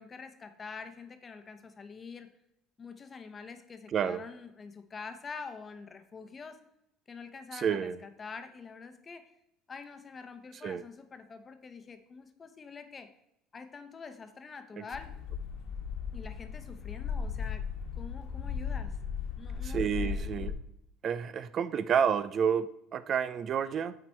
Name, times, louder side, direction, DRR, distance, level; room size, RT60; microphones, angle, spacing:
voice 1, 0.0-2.3 2.8-6.6 7.1-9.3 9.7-13.1 13.5-15.1 16.1-17.6 18.0-18.9 19.4-20.4, left 5 dB, 30° left, 8 dB, 0.9 m, -46 dB
voice 2, 3.9-4.2 7.5-8.0 10.6-10.8 14.8-14.9 19.6-20.5 21.0-24.0, right 7 dB, 45° right, 14 dB, 0.4 m, -30 dB
sound 1, 14.9-20.5, left 6 dB, 70° left, 1.5 m, -36 dB
8.6 x 4.3 x 4.5 m, 0.81 s
supercardioid pair, 105°, 0 cm